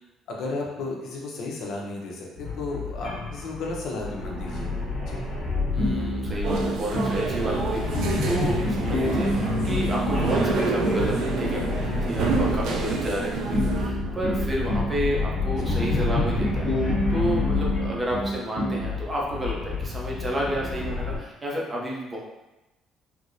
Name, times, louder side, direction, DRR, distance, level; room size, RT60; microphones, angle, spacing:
voice 1, 0.3-4.7 5.1-5.2 15.6-15.8, left 3 dB, 60° left, -2 dB, 0.7 m, -33 dB
sound 1, 2.3-18.1 18.7-21.2, left 4 dB, 10° left, 1.1 m, -30 dB
voice 2, 5.7-22.2, equal, 15° right, -3 dB, 0.6 m, -31 dB
sound 2, 5.8-7.2 7.9-11.1 13.5-14.9 15.7-18.9, equal, 25° left, 1.4 m, -27 dB
sound 3, 6.4-13.9, right 3 dB, 65° right, 0.4 m, -28 dB
4.4 x 2.0 x 2.6 m, 1.0 s
cardioid pair, 165°, 0 cm